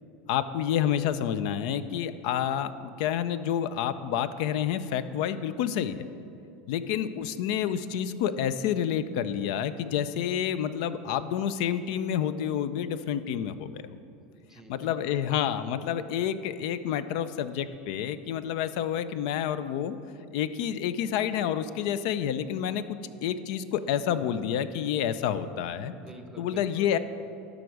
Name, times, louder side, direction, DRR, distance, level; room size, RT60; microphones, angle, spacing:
voice 1, 0.3-6.1 6.7-13.8 14.7-20.0 20.3-25.9 26.4-27.0, left 9 dB, 70° left, 13 dB, 0.4 m, -29 dB
voice 2, 14.1-15.2 25.9-27.0, right 2 dB, 10° right, 6 dB, 0.7 m, -49 dB
12.5 x 5.2 x 4.8 m, 2.7 s
supercardioid pair, 125°, 4 cm